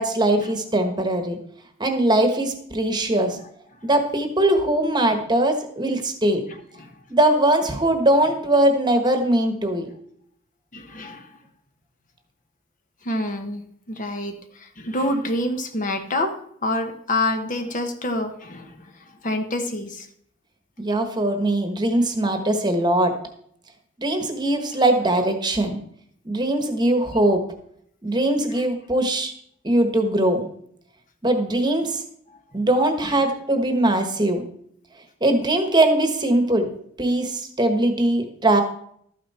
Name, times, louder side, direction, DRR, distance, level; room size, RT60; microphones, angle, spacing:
voice 1, 0.0-1.4 1.8-3.4 3.8-6.4 7.1-9.9 20.8-23.1 24.0-25.8 26.2-27.4 28.0-29.3 29.6-30.5 31.2-32.0 32.5-34.4 35.2-36.7 37.0-38.6, right 1 dB, 20° right, 6 dB, 1.3 m, -21 dB
voice 2, 10.7-11.3 13.0-16.3 16.6-20.1 28.5-28.6 33.0-33.2, left 1 dB, 40° left, 6 dB, 1.2 m, -27 dB
12.5 x 9.3 x 4.3 m, 0.67 s
head